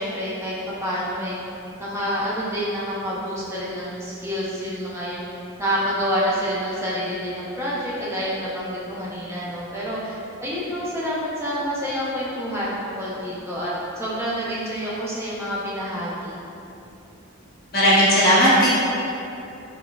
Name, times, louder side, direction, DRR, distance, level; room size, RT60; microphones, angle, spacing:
voice 1, 0.0-1.4 1.8-5.2 5.6-13.7 14.0-16.3, equal, 10° right, -8 dB, 0.5 m, -28 dB
voice 2, 17.7-18.7, equal, 45° left, -9 dB, 0.8 m, -16 dB
3.9 x 2.1 x 2.2 m, 2.8 s
head